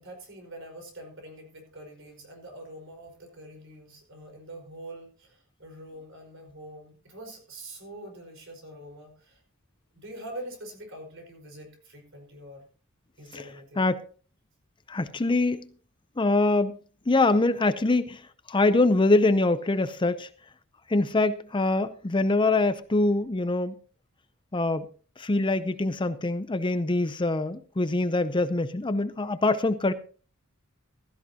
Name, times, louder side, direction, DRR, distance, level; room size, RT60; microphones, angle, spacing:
voice 1, 0.0-9.4 9.9-12.7 13.2-13.9, right 1 dB, 60° right, 4.9 m, -44 dB
voice 2, 14.9-15.7 16.2-16.8 17.1-20.3 20.9-23.7 24.5-24.9 25.2-29.9, left 2 dB, 20° left, 0.6 m, -24 dB
15.5 x 13.5 x 2.8 m
head